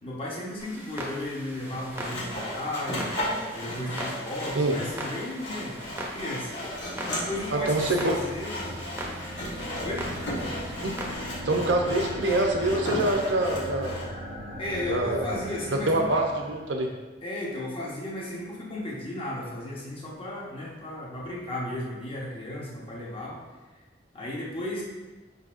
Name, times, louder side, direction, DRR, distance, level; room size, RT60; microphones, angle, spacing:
voice 1, 0.0-3.1 3.5-6.5 7.0-8.5 9.8-10.1 14.6-16.2 17.2-23.4 24.1-24.8, left 1 dB, 30° left, -4 dB, 1.0 m, -34 dB
Clock, 0.6-11.2, right 1 dB, 15° right, 0.6 m, -40 dB
Sawing, 1.6-14.1, left 1 dB, 85° left, 1.4 m, -35 dB
sound 1, 6.3-16.8, equal, 60° left, 1.4 m, -39 dB
voice 2, 7.5-8.2 10.8-10.9 11.4-14.0 14.9-15.4 15.9-16.9, right 2 dB, 85° right, 2 dB, 0.7 m, -25 dB
5.3 x 4.0 x 2.5 m, 1.2 s
head